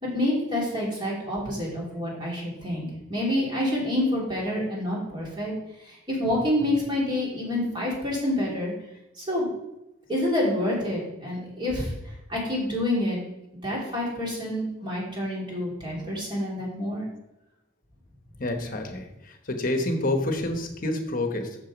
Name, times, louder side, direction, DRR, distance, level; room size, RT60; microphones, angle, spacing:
voice 1, 0.0-5.5 5.8-8.7 9.2-9.5 10.1-11.9 12.3-13.2 13.6-17.0, left 1 dB, 25° right, -5 dB, 3.0 m, -27 dB
voice 2, 18.4-21.6, left 1 dB, 45° left, 4 dB, 1.1 m, -28 dB
7.0 x 6.3 x 5.1 m, 0.90 s
head